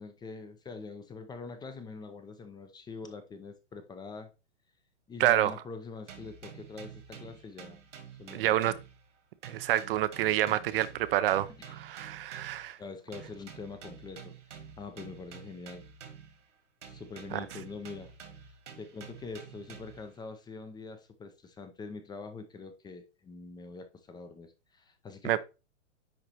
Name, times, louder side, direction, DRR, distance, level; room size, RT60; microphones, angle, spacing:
voice 1, 0.0-4.3 5.1-7.8 8.2-8.8 10.5-10.6 11.6-11.8 12.8-15.8 16.8-18.1 18.8-25.4, left 4 dB, 10° left, 0.6 m, -44 dB
voice 2, 5.2-5.5 8.3-8.7 9.4-12.8 17.3-17.5 25.2-25.4, right 13 dB, 50° right, 0.6 m, -28 dB
sound 1, 6.1-9.2 9.4-12.7 13.1-16.5 16.8-20.1, right 7 dB, 75° right, 2.0 m, -49 dB
10.0 x 3.8 x 2.9 m
hypercardioid pair, 120°, 36 cm